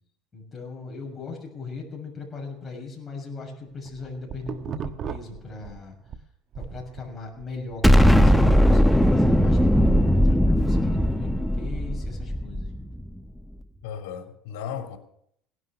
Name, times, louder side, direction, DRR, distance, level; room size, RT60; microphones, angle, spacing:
voice 1, 0.3-6.0 6.5-12.7, left 3 dB, 20° left, 6.6 m, -39 dB
sound 1, 3.7-6.2 6.5-8.9, right 7 dB, 40° right, 1.2 m, -37 dB
Explosion, 7.8-13.0, equal, ahead, 1.0 m, -19 dB
voice 2, 13.8-15.0, left 8 dB, 85° left, 3.0 m, -35 dB
18.0 x 11.5 x 6.8 m
cardioid pair, 130°, 0 cm